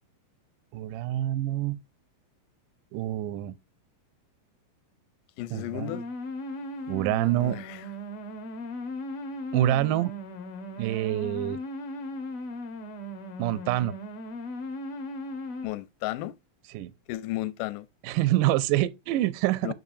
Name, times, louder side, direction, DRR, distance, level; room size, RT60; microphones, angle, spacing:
voice 1, 0.7-1.8 2.9-3.5 5.5-5.9 6.9-7.6 9.5-10.1 10.8-11.6 13.4-13.9 16.7-16.9 18.0-19.7, right 14 dB, 80° right, 2.0 m, -26 dB
voice 2, 5.4-6.0 7.1-7.9 15.6-16.4 17.1-17.9 19.6-19.7, left 16 dB, 75° left, 2.1 m, -34 dB
sound 1, 5.8-15.7, left 1 dB, 60° left, 1.5 m, -37 dB
6.9 x 6.2 x 2.7 m
omnidirectional pair, 4.1 m